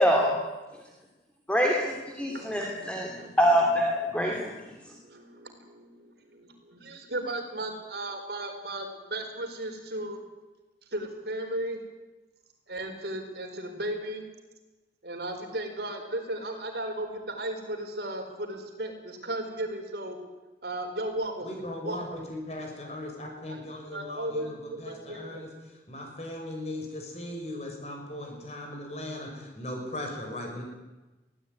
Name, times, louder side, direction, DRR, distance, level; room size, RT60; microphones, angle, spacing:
voice 1, 0.0-0.4 1.5-1.7 2.2-3.1 3.4-4.9, equal, 5° left, -1 dB, 2.7 m, -24 dB
voice 2, 2.2-3.3 4.2-4.5 4.8-10.2 10.9-11.8 12.7-14.2 15.0-20.2 20.6-22.2 23.5-25.5, right 1 dB, 65° right, 4 dB, 4.5 m, -36 dB
voice 3, 21.4-30.6, left 1 dB, 35° left, 2 dB, 6.5 m, -38 dB
23.0 x 16.5 x 9.5 m, 1.1 s
head